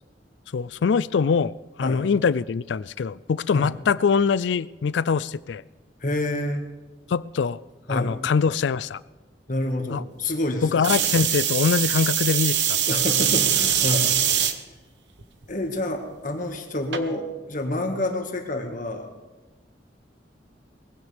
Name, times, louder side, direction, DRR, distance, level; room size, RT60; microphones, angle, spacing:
voice 1, 0.5-1.5 1.8-5.6 7.1-7.6 7.9-9.0 9.9-10.0 10.6-12.8, left 5 dB, 80° left, 19 dB, 0.4 m, -23 dB
voice 2, 6.0-6.7 7.9-8.1 9.5-11.1 12.9-14.1 15.5-19.1, left 1 dB, 45° left, 4 dB, 1.8 m, -28 dB
sound 1, 10.8-14.5 15.2-15.6 16.9-17.0, right 9 dB, 75° right, 1.1 m, -22 dB
21.0 x 16.0 x 3.5 m, 1.2 s
head